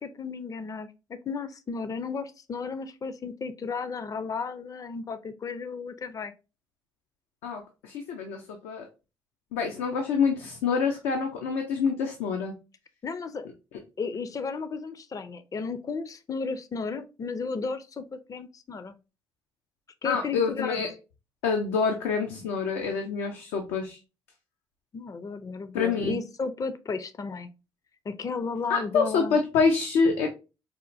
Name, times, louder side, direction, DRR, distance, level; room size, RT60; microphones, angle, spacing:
voice 1, 0.0-6.3 13.0-13.5 14.0-19.0 20.0-20.8 24.9-27.5 28.1-29.4, left 4 dB, 35° left, 11 dB, 0.4 m, -34 dB
voice 2, 7.4-8.9 9.5-12.6 20.0-20.9 21.4-24.0 25.7-26.2 28.7-30.3, left 5 dB, 90° left, 3 dB, 0.5 m, -26 dB
4.2 x 2.1 x 2.5 m, 0.30 s
supercardioid pair, 55°, 10 cm